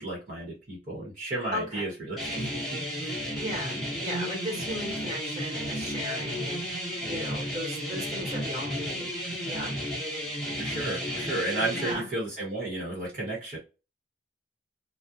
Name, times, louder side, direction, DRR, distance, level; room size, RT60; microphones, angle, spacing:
voice 1, 0.0-3.3 10.6-13.6, right 2 dB, 50° right, -4 dB, 0.9 m, -33 dB
voice 2, 1.5-1.9 3.3-6.6 7.0-9.1 9.5-9.7 11.7-12.1, left 1 dB, 25° right, -2 dB, 1.1 m, -36 dB
sound 1, 2.2-11.9, equal, ahead, 0.8 m, -33 dB
2.4 x 2.1 x 2.6 m, 0.31 s
head